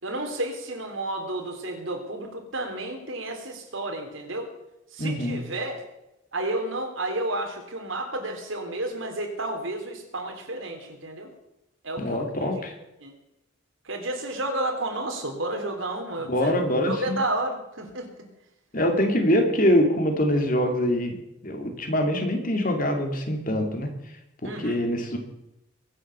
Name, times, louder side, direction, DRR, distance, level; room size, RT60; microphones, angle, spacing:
voice 1, 0.0-4.5 4.9-5.8 6.3-11.3 11.8-12.6 13.0-13.1 13.8-16.5 16.9-18.1 24.4-24.8, right 2 dB, 75° right, 3 dB, 3.4 m, -31 dB
voice 2, 5.0-5.4 12.0-12.7 16.2-17.2 18.7-21.2 21.4-23.9 24.4-25.2, equal, 40° left, 4 dB, 2.5 m, -24 dB
22.5 x 7.9 x 6.9 m, 0.88 s
head